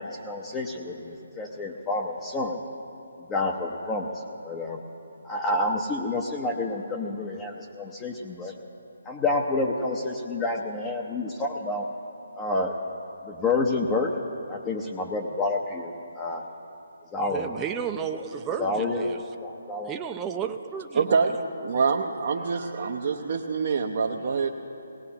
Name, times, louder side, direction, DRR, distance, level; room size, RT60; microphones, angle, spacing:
voice 1, 0.0-2.6 3.3-4.1 4.4-4.8 5.2-8.5 9.1-11.9 12.4-12.8 13.3-14.1 14.5-16.5 17.1-17.5 18.6-19.1 19.4-20.0, left 2 dB, 15° left, 0 dB, 0.8 m, -29 dB
voice 2, 17.3-19.2 19.8-21.2, right 7 dB, 15° right, 4 dB, 0.6 m, -32 dB
voice 3, 20.9-21.3 21.6-24.5, right 5 dB, 50° right, 1 dB, 0.8 m, -25 dB
19.0 x 18.5 x 2.9 m, 2.9 s
figure-of-eight pair, 150°, 0 cm